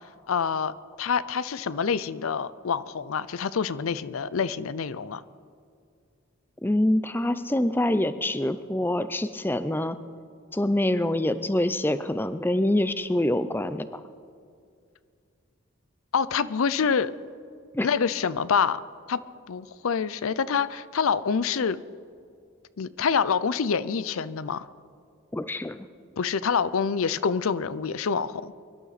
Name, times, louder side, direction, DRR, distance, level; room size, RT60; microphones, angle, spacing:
voice 1, 0.3-5.2 16.1-17.1 17.8-18.8 19.1-19.2 19.5-21.8 22.8-24.7 26.2-28.5, left 6 dB, 85° left, 16 dB, 0.5 m, -26 dB
voice 2, 6.6-10.0 10.5-14.0 17.7-17.9 25.3-25.9, left 1 dB, 10° left, 12 dB, 0.4 m, -25 dB
23.5 x 12.0 x 4.1 m, 2.3 s
head